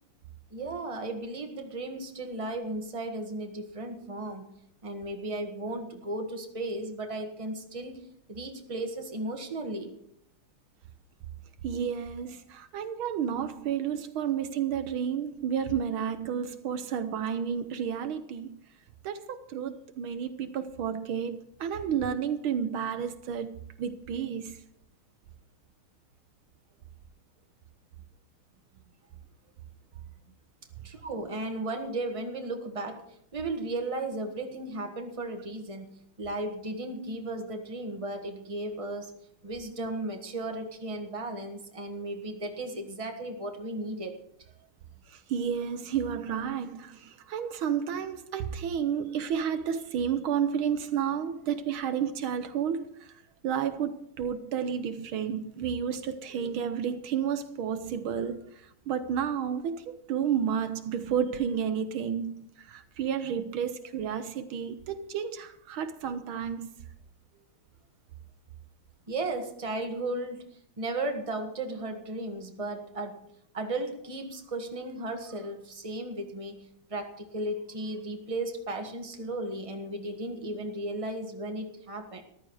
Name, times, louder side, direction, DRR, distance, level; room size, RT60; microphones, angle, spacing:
voice 1, 0.5-4.6 4.8-8.0 8.3-9.9 30.8-39.1 39.4-44.1 69.1-70.5 70.8-73.2 73.5-82.2, right 2 dB, 15° right, 1.5 m, -35 dB
voice 2, 11.6-18.6 19.0-24.6 45.1-53.1 53.4-66.9, right 8 dB, 75° right, 1.6 m, -31 dB
14.0 x 12.5 x 4.8 m
omnidirectional pair, 2.3 m